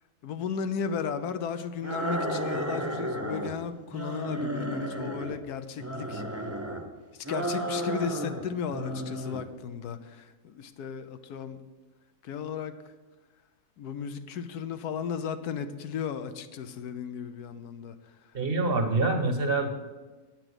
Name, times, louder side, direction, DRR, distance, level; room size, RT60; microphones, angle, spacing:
voice 1, 0.2-6.2 7.3-11.6 12.2-12.8 13.8-17.9, left 7 dB, 80° left, 10 dB, 1.2 m, -35 dB
sound 1, 1.8-3.6 3.9-5.4 5.8-6.8 7.2-8.4 8.7-9.4, right 1 dB, 10° right, 0.7 m, -33 dB
voice 2, 18.3-19.7, right 3 dB, 40° right, 5 dB, 1.0 m, -26 dB
8.7 x 6.0 x 8.0 m, 1.2 s
omnidirectional pair, 1.7 m